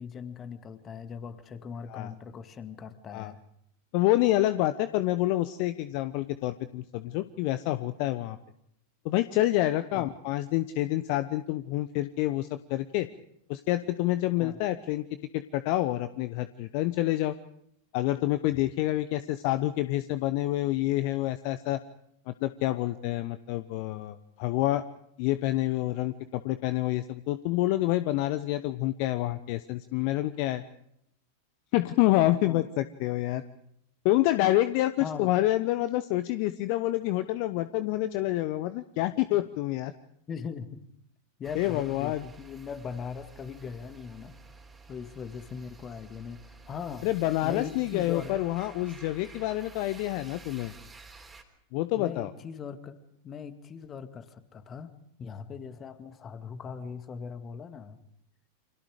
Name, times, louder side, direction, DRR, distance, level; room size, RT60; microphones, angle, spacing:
voice 1, 0.0-3.4 9.9-10.1 14.4-14.6 32.5-32.7 35.0-35.3 39.3-39.4 40.3-40.8 41.4-44.4 44.9-47.1 47.4-48.3 51.9-53.0 53.2-54.9 55.2-58.0, left 6 dB, 25° left, 11 dB, 2.0 m, -40 dB
voice 2, 3.9-8.4 9.0-13.1 13.5-15.0 15.3-17.4 17.9-21.8 22.3-24.8 25.2-30.6 31.7-33.4 34.0-39.9 41.5-42.2 47.0-50.7 51.7-52.3, left 16 dB, 45° left, 13 dB, 0.9 m, -27 dB
sound 1, 41.4-51.4, right 3 dB, 15° right, 3.7 m, -51 dB
29.5 x 25.5 x 5.0 m, 0.73 s
figure-of-eight pair, 90°, 0 cm